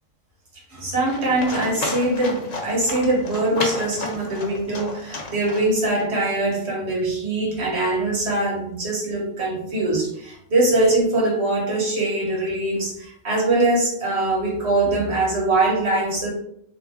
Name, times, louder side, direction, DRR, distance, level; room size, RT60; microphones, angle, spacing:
voice 1, 0.7-16.3, right 2 dB, 55° right, -3 dB, 1.5 m, -22 dB
Livestock farm animals working animals, 1.1-6.0, left 3 dB, 75° left, 1.2 m, -32 dB
3.5 x 2.9 x 3.8 m, 0.71 s
omnidirectional pair, 1.4 m